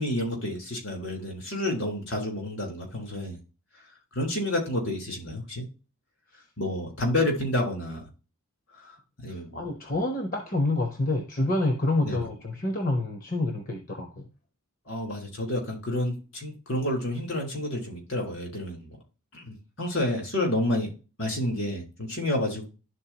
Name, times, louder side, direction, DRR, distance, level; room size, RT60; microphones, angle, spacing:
voice 1, 0.0-3.4 4.2-5.6 6.6-8.0 8.9-9.0 9.2-9.6 12.0-12.2 14.9-19.0 19.3-20.9 21.2-22.7, left 1 dB, 65° left, 1 dB, 3.9 m, -29 dB
voice 2, 9.5-14.2, left 2 dB, 40° left, 4 dB, 0.9 m, -27 dB
11.5 x 4.1 x 2.9 m, 0.32 s
head